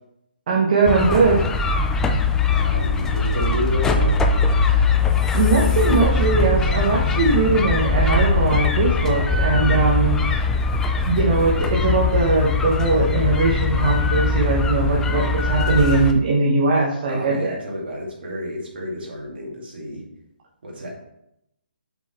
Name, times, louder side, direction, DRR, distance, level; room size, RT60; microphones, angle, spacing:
voice 1, 0.5-1.4 4.6-5.0 5.3-10.2 11.1-17.6, right 3 dB, 50° right, -5 dB, 1.1 m, -20 dB
sound 1, 0.9-16.1, left 4 dB, 10° left, 0.3 m, -21 dB
voice 2, 2.5-4.2 17.1-20.0 20.6-20.9, left 1 dB, 65° right, -1 dB, 2.2 m, -30 dB
5.8 x 4.0 x 4.4 m, 0.81 s
hypercardioid pair, 150°, 6 cm